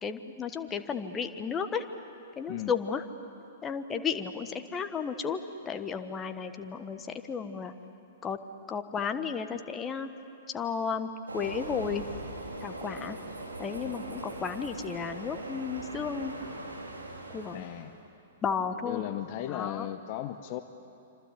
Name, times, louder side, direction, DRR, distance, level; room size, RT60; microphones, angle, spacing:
voice 1, 0.0-1.8 2.4-3.0 3.6-5.4 5.6-7.7 8.2-8.4 8.7-10.1 10.5-12.0 12.6-13.2 13.6-16.3 17.3-17.7 18.4-19.0 19.5-19.9, left 6 dB, 20° left, 8 dB, 1.3 m, -33 dB
Train, 11.3-18.0, right 2 dB, 80° right, 4.2 m, -40 dB
voice 2, 17.5-17.9 18.8-20.6, left 13 dB, 40° left, 9 dB, 0.9 m, -36 dB
27.0 x 26.0 x 8.3 m, 2.8 s
figure-of-eight pair, 110°, 0 cm